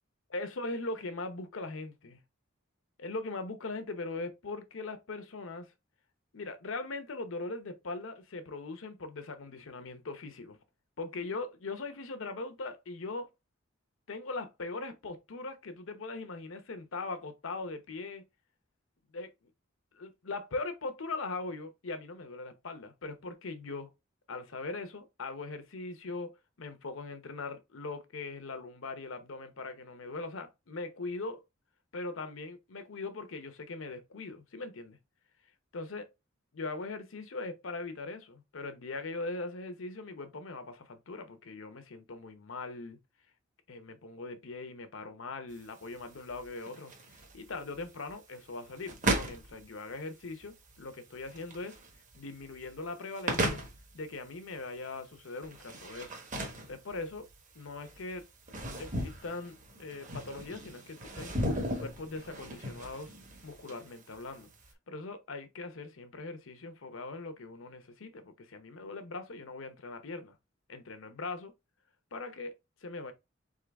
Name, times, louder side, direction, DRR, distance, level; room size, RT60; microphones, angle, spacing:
voice 1, 0.3-2.2 3.0-5.7 6.3-10.6 11.0-13.3 14.1-18.2 19.1-19.3 19.9-23.9 24.3-31.4 31.9-35.0 35.7-36.1 36.5-43.0 43.7-46.9 47.3-51.8 52.1-53.6 53.9-56.2 56.7-57.3 57.5-58.2 58.8-61.3 61.8-63.1 63.4-64.5 64.9-70.4 70.7-71.5 72.1-72.5 72.8-73.1, left 3 dB, 70° left, 0.8 m, -40 dB
sound 1, 45.5-64.7, right 1 dB, 40° right, 1.1 m, -38 dB
3.8 x 3.8 x 3.4 m
head